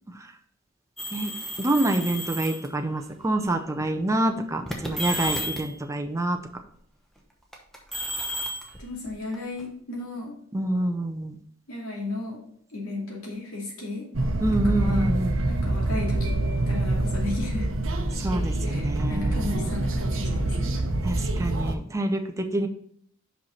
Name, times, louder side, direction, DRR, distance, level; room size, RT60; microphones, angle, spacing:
sound 1, 1.0-2.7 3.6-3.9 4.7-5.8 7.5-9.6, equal, ahead, 0.9 m, -32 dB
voice 1, 1.6-6.4 10.5-11.4 14.4-15.4 18.2-19.7 21.0-22.7, right 1 dB, 15° right, 5 dB, 0.5 m, -27 dB
voice 2, 8.6-10.3 11.7-12.4 12.7-14.1 14.8-15.1 15.5-16.4 16.7-17.7 18.6-20.8, left 2 dB, 90° left, -2 dB, 2.6 m, -34 dB
sound 2, 14.1-21.7, right 2 dB, 70° right, 0.8 m, -26 dB
5.6 x 5.3 x 4.4 m, 0.66 s
head